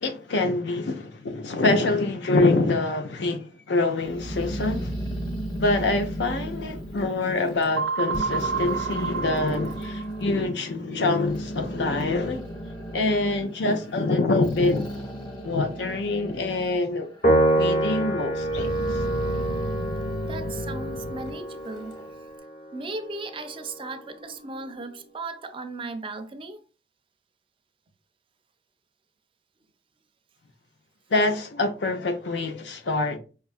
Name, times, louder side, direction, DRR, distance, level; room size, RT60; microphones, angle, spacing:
voice 1, 0.0-4.9 5.6-12.4 12.9-14.9 15.4-17.1 17.5-18.7 31.1-33.2, left 2 dB, 70° left, 0.6 m, -25 dB
Growling, 4.0-7.8 8.1-10.4 11.0-16.8 17.2-17.9 18.3-22.1, right 1 dB, 25° left, 1.1 m, -34 dB
sound 1, 7.8-10.4, right 5 dB, 85° right, 0.6 m, -29 dB
Piano, 17.2-23.8, right 1 dB, 50° left, 1.0 m, -27 dB
voice 2, 20.3-22.0 22.7-26.6, right 3 dB, 30° right, 0.4 m, -36 dB
5.4 x 2.4 x 2.4 m
head